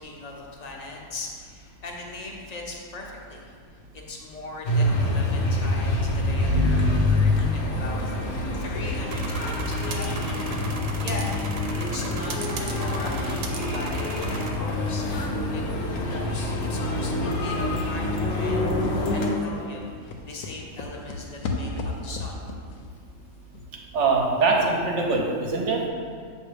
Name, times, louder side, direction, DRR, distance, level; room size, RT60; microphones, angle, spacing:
voice 1, 0.0-3.5 4.1-11.3 11.8-22.4, left 2 dB, 40° left, -1 dB, 0.7 m, -39 dB
sound 1, 4.6-19.3, left 1 dB, 60° left, 1.0 m, -26 dB
voice 2, 6.5-6.8 23.9-25.9, right 3 dB, 65° right, 0 dB, 1.1 m, -22 dB
sound 2, 9.1-14.5, right 4 dB, 80° right, 1.0 m, -38 dB
sound 3, 15.7-16.0 16.4-16.5 16.8-24.5 24.8-24.9, left 2 dB, 90° left, 1.0 m, -37 dB
7.1 x 2.7 x 5.0 m, 2.1 s
omnidirectional pair, 1.4 m